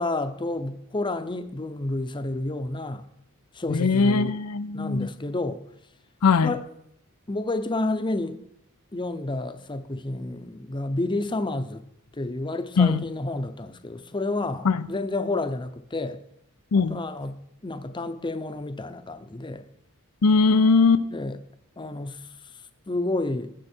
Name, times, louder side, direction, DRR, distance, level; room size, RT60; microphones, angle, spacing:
voice 1, 0.0-3.0 3.5-4.4 4.7-5.6 6.4-6.6 7.3-8.4 8.9-11.8 12.2-16.2 16.7-19.7 21.1-21.4 21.8-22.2 22.9-23.5, left 2 dB, 20° left, 0.7 m, -30 dB
voice 2, 3.7-5.1 6.2-6.6 12.8-13.1 14.6-14.9 16.7-17.0 20.2-21.1, left 4 dB, 90° left, 0.6 m, -20 dB
18.5 x 7.5 x 4.5 m
head